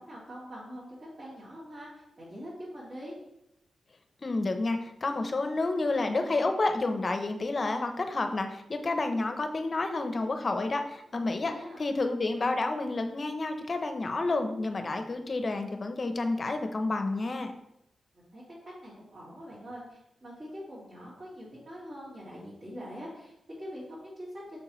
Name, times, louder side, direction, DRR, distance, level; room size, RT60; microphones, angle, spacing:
voice 1, 0.0-3.1 11.4-11.8 18.3-18.4 18.8-24.6, equal, 45° right, -9 dB, 2.6 m, -44 dB
voice 2, 4.2-17.5, left 2 dB, 40° left, 6 dB, 0.7 m, -30 dB
6.7 x 5.6 x 3.1 m, 0.82 s
wide cardioid pair, 110°, 0 cm